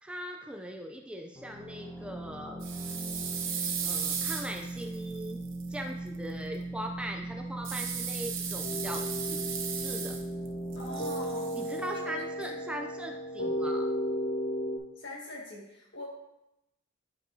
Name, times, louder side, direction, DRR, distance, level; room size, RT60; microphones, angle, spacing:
voice 1, 0.0-2.6 3.5-5.4 5.7-9.5 9.8-10.2 11.5-13.9, equal, 5° right, 3 dB, 0.4 m, -40 dB
sound 1, 1.4-12.9, right 2 dB, 15° left, 1.1 m, -40 dB
sound 2, 2.6-5.7 7.6-10.5 10.7-11.8, right 7 dB, 80° right, 0.8 m, -36 dB
sound 3, 8.6-14.8, equal, 85° left, 1.6 m, -34 dB
voice 2, 10.7-11.7 12.1-12.6 15.0-16.1, left 2 dB, 60° left, -2 dB, 1.8 m, -43 dB
9.4 x 5.7 x 2.7 m, 0.89 s
head